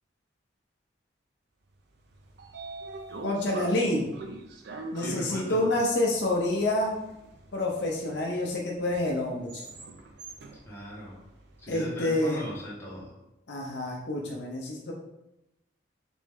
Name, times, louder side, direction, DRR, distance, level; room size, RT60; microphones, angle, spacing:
Train / Sliding door, 1.9-12.1, right 3 dB, 60° right, 0.5 m, -44 dB
voice 1, 3.2-4.1 4.9-7.0 7.5-9.6 11.7-12.5 13.5-14.9, left 1 dB, 65° left, -1 dB, 0.6 m, -28 dB
voice 2, 5.0-5.6 10.7-11.2 11.6-13.1, equal, 15° left, -7 dB, 1.1 m, -39 dB
3.4 x 3.1 x 3.5 m, 0.90 s
head